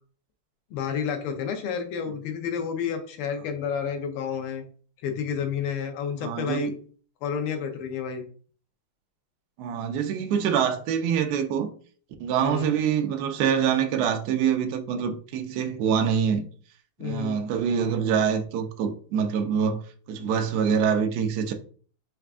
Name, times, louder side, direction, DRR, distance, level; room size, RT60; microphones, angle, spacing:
voice 1, 0.7-4.6 5.0-6.8 7.2-8.2 12.4-12.7 17.0-17.4, left 7 dB, 90° left, 1.7 m, -30 dB
voice 2, 6.2-6.8 9.6-11.7 12.2-16.4 17.0-19.8 20.1-21.5, right 7 dB, 85° right, 0.8 m, -25 dB
4.5 x 2.4 x 3.5 m
omnidirectional pair, 2.3 m